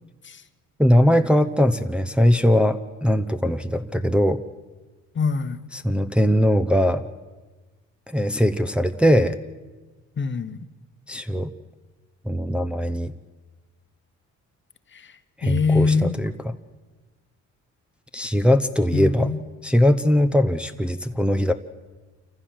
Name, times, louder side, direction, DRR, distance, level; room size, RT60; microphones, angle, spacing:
voice 1, 0.8-4.4 5.7-7.0 8.1-9.4 11.1-11.5 12.3-13.1 15.4-16.3 18.1-19.3 19.6-21.5, equal, 5° right, 0.8 m, -20 dB
voice 2, 5.1-5.6 10.2-10.6 14.9-16.2 18.9-19.4, left 4 dB, 40° left, 1.1 m, -24 dB
27.5 x 15.0 x 7.6 m
cardioid pair, 90°, 30 cm